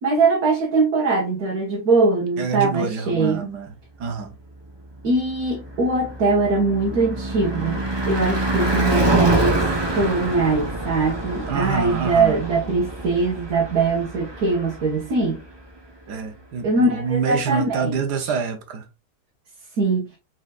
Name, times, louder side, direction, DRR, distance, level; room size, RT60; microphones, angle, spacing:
voice 1, 0.0-3.5 5.0-9.6 9.9-15.4 16.6-17.9 19.8-20.1, right 3 dB, 65° right, 1.8 m, -22 dB
voice 2, 2.4-4.3 11.5-12.4 16.1-18.9, right 6 dB, 85° right, 1.5 m, -26 dB
Car passing by / Truck / Engine, 5.0-15.2, right 2 dB, 20° right, 0.8 m, -25 dB
4.6 x 4.2 x 2.4 m
omnidirectional pair, 1.7 m